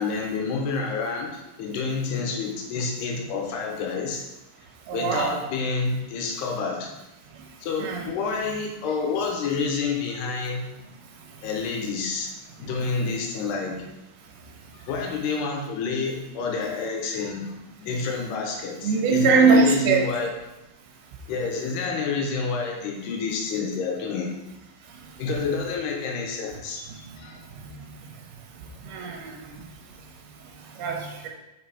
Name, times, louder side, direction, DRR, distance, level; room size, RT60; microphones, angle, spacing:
voice 1, 0.0-4.2 4.9-6.9 7.6-10.6 11.4-12.3 12.6-13.8 14.7-17.5 17.8-20.4 21.3-24.3 25.2-27.4, left 4 dB, 85° left, 0 dB, 3.2 m, -28 dB
voice 2, 4.9-5.4 7.8-8.1 18.8-20.0 27.6-27.7 28.8-29.3 30.8-31.3, right 4 dB, 75° right, 1 dB, 3.0 m, -21 dB
6.8 x 5.4 x 4.2 m, 0.96 s
omnidirectional pair, 4.6 m